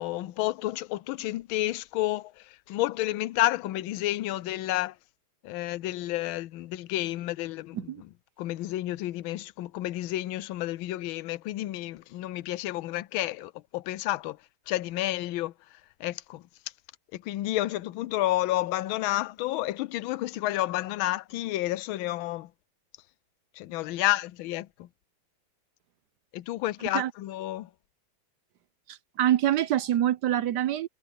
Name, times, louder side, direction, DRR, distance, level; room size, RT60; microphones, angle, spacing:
voice 1, 0.0-2.3 2.7-4.9 5.4-7.8 8.4-14.4 14.7-15.5 16.0-16.4 17.1-22.5 23.6-24.9 26.3-27.7, left 16 dB, 85° left, 1.4 m, -30 dB
voice 2, 28.9-30.9, right 12 dB, 65° right, 1.2 m, -25 dB
omnidirectional pair, 2.2 m